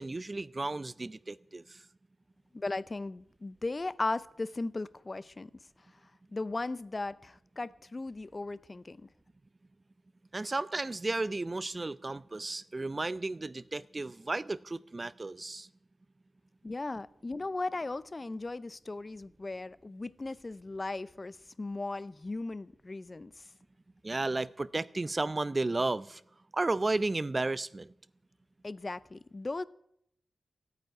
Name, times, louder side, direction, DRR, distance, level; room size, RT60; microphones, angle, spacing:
voice 1, 0.0-1.8 10.3-15.7 24.0-26.2 26.5-27.9, right 2 dB, 35° right, 0.5 m, -33 dB
voice 2, 2.5-5.5 6.3-9.1 16.6-23.5 28.6-29.6, left 2 dB, 35° left, 0.6 m, -37 dB
14.5 x 9.3 x 9.2 m
cardioid pair, 65°, 0 cm